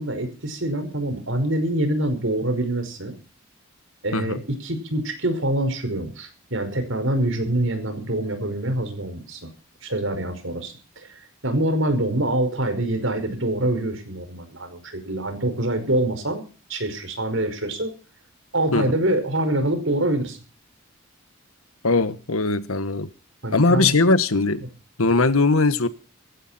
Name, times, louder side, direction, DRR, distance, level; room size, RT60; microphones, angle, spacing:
voice 1, 0.0-3.2 4.0-9.5 9.8-16.4 16.7-17.9 18.5-20.4 23.4-23.9, right 1 dB, 65° right, 5.2 m, -25 dB
voice 2, 21.8-23.1 23.5-24.6 25.0-25.9, left 3 dB, 85° left, 1.5 m, -20 dB
17.0 x 16.5 x 4.3 m
head